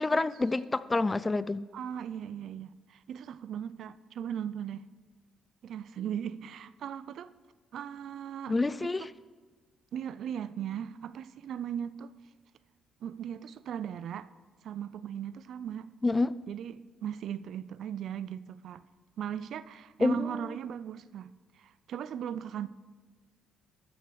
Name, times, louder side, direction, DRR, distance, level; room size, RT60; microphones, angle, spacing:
voice 1, 0.0-1.6 8.5-9.1 16.0-16.3 20.0-20.3, left 3 dB, 20° left, 0.3 m, -27 dB
voice 2, 1.7-4.9 5.6-7.3 7.7-9.1 9.9-12.1 13.0-14.3 14.6-15.9 16.5-18.8 19.2-22.7, right 9 dB, 70° right, 0.4 m, -38 dB
13.5 x 6.3 x 6.3 m
cardioid pair, 90°, 0 cm